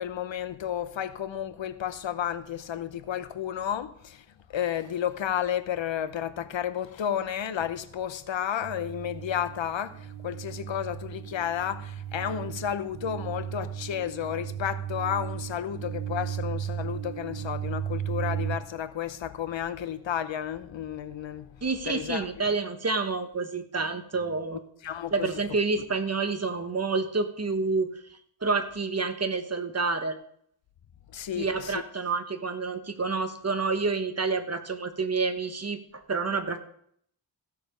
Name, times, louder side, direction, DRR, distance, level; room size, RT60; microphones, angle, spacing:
voice 1, 0.0-4.2 4.5-21.5 21.9-22.3 24.8-25.3 31.1-31.8, left 9 dB, 80° left, 0.9 m, -32 dB
sound 1, 8.6-18.6, right 10 dB, 55° right, 1.2 m, -35 dB
voice 2, 21.6-24.6 25.1-27.9 28.4-30.2 31.4-36.6, right 4 dB, 35° right, 1.3 m, -28 dB
15.0 x 6.8 x 5.1 m
wide cardioid pair, 110°, 45 cm